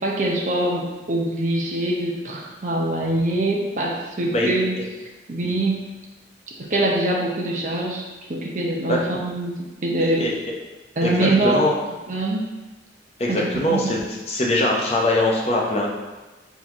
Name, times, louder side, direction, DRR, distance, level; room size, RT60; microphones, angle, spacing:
voice 1, 0.0-4.8 5.3-5.8 6.6-8.0 8.3-10.3 11.0-11.8 12.1-12.4 13.3-13.9, right 1 dB, 45° right, -1 dB, 0.7 m, -24 dB
voice 2, 10.0-10.3 11.0-11.8 13.2-14.0 14.3-15.9, left 1 dB, 35° left, -3 dB, 0.7 m, -22 dB
4.0 x 3.0 x 3.6 m, 1.2 s
head